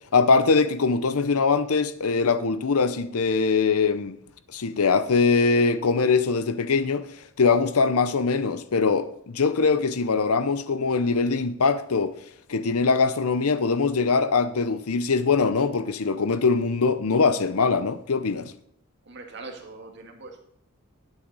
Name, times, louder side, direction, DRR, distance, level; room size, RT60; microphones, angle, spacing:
voice 1, 0.1-4.2 4.5-7.1 7.4-12.1 12.5-18.5, left 4 dB, 85° left, 0.7 m, -22 dB
voice 2, 19.1-20.4, right 3 dB, 50° right, 2.0 m, -41 dB
11.5 x 9.2 x 4.0 m
head